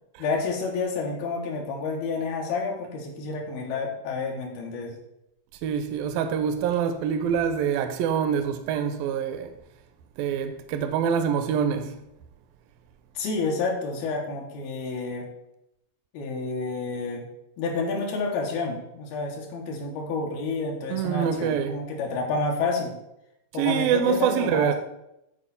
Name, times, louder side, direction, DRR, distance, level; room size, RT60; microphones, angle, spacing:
voice 1, 0.2-5.0 13.2-15.3 16.1-17.2 17.6-22.9 23.5-24.7, left 3 dB, 80° left, 2.9 m, -29 dB
voice 2, 5.6-9.5 10.2-12.0 20.9-21.8 23.6-24.7, right 8 dB, 80° right, 2.3 m, -25 dB
8.9 x 4.3 x 5.7 m
omnidirectional pair, 4.3 m